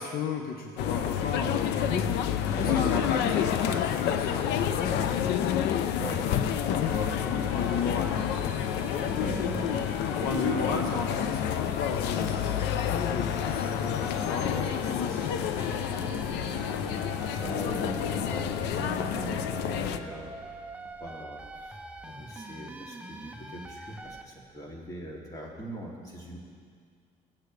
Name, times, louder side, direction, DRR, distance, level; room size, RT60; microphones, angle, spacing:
voice 1, 0.0-5.5 6.0-6.4 6.7-8.6 9.1-9.7 10.2-16.1, left 5 dB, 60° left, 2 dB, 0.9 m, -35 dB
sound 1, 0.8-20.0, left 9 dB, 85° left, 0.6 m, -29 dB
voice 2, 2.5-3.0 6.0-6.2 9.0-9.8 10.1-10.8 14.5-14.7 17.3-20.3 21.0-21.8 22.0-26.4, right 1 dB, 20° left, -3 dB, 2.7 m, -40 dB
sound 2, 6.6-24.2, right 2 dB, 5° right, 0.7 m, -44 dB
Bowed string instrument, 15.6-21.0, right 10 dB, 60° right, 0.5 m, -48 dB
18.0 x 8.4 x 3.3 m, 2.1 s
cardioid pair, 110°, 17 cm